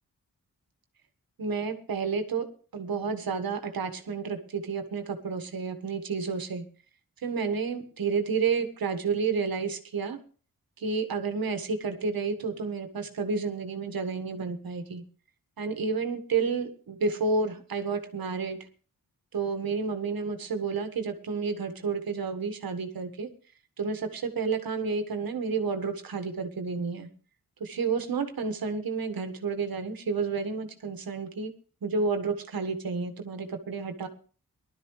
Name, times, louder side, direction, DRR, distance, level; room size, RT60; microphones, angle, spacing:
voice 1, 1.4-6.6 7.2-10.2 10.8-15.0 15.6-18.6 19.3-23.3 23.8-27.1 27.6-31.5 31.8-34.1, right 4 dB, 80° right, 8 dB, 1.7 m, -30 dB
19.5 x 12.0 x 3.2 m, 0.40 s
wide cardioid pair, 115°, 35 cm